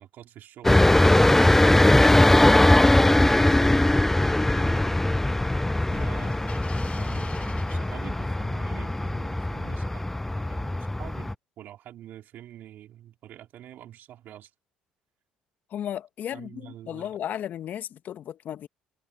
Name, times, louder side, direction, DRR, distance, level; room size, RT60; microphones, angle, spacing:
voice 1, 0.0-4.8 5.9-6.6 6.9-14.5 16.3-17.2, right 12 dB, 60° right, 4.4 m, -46 dB
sound 1, 0.6-11.3, left 1 dB, 10° left, 0.4 m, -21 dB
sound 2, 3.3-8.6, left 5 dB, 35° left, 1.9 m, -42 dB
voice 2, 15.7-18.7, left 10 dB, 55° left, 1.6 m, -34 dB
hypercardioid pair, 55°, 4 cm